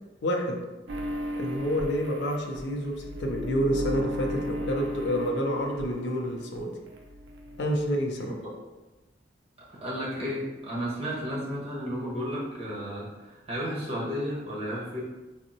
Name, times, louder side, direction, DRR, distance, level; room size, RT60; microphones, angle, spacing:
voice 1, 0.2-0.6 1.4-6.7 7.6-8.3, equal, 75° left, 2 dB, 0.5 m, -28 dB
sound 1, 0.9-6.6 6.9-8.0, equal, 90° right, 0.4 m, -35 dB
voice 2, 8.2-8.5 9.7-15.0, equal, 35° right, -6 dB, 1.0 m, -33 dB
3.5 x 2.0 x 2.7 m, 1.1 s
head